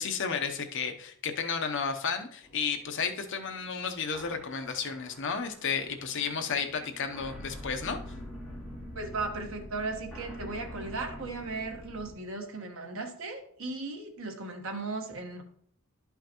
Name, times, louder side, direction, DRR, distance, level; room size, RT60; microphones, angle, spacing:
voice 1, 0.0-8.0, left 6 dB, 55° left, 6 dB, 0.7 m, -32 dB
sound 1, 2.4-12.1, equal, ahead, 2.4 m, -45 dB
voice 2, 8.9-15.4, right 3 dB, 65° right, 4 dB, 1.2 m, -36 dB
11.5 x 5.6 x 2.9 m, 0.63 s
head